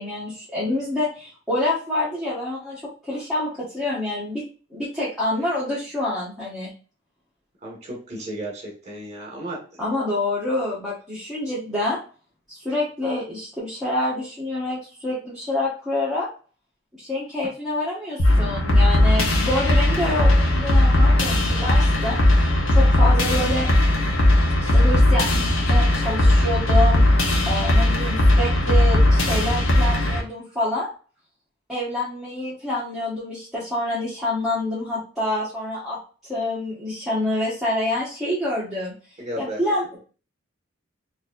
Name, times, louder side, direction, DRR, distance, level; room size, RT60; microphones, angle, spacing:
voice 1, 0.0-4.4 4.7-6.7 9.8-12.0 12.5-16.3 17.0-22.2 22.7-23.7 24.6-30.9 31.7-36.0 36.3-38.9 39.4-40.0, left 1 dB, ahead, -10 dB, 1.2 m, -27 dB
voice 2, 7.6-9.6 39.2-39.6, right 1 dB, 35° right, -1 dB, 1.5 m, -33 dB
sound 1, 18.2-30.2, left 1 dB, 85° left, 1.0 m, -18 dB
4.1 x 2.7 x 2.5 m, 0.38 s
head